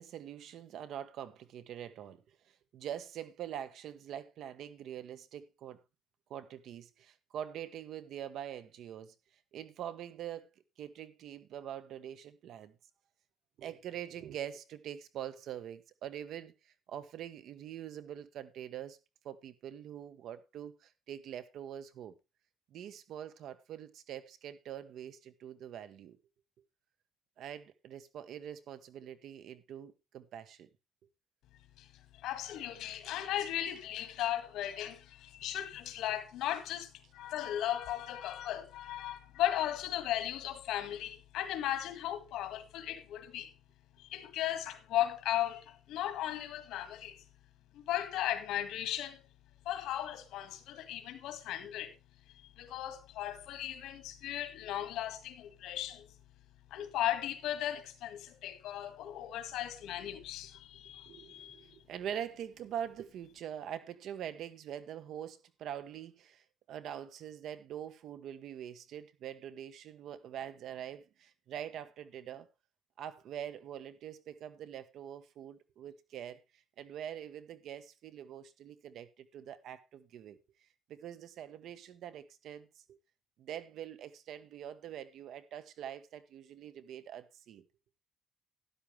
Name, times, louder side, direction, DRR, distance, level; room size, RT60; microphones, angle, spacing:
voice 1, 0.0-2.4 2.7-5.8 6.3-9.1 9.5-10.5 10.8-12.7 13.6-19.0 19.2-22.1 22.7-26.2 27.4-30.7 61.1-72.5 73.0-80.4 80.9-83.0 83.4-87.6, right 10 dB, 65° right, 1.2 m, -44 dB
voice 2, 32.1-43.5 44.0-47.2 47.7-49.2 49.7-51.9 52.6-56.1 56.7-61.6, left 12 dB, 85° left, 1.9 m, -36 dB
12.5 x 10.5 x 3.3 m
cardioid pair, 160°, 0 cm